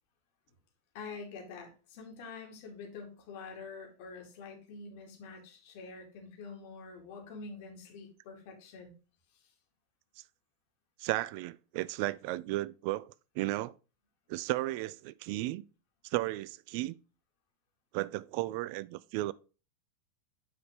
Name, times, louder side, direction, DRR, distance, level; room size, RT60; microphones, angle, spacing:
voice 1, 0.9-8.9, left 4 dB, 50° left, 2.6 m, -46 dB
voice 2, 11.0-13.7 14.3-15.6 16.0-16.9 17.9-19.3, right 18 dB, 45° right, 0.3 m, -34 dB
9.2 x 4.9 x 3.7 m
figure-of-eight pair, 90°, 0 cm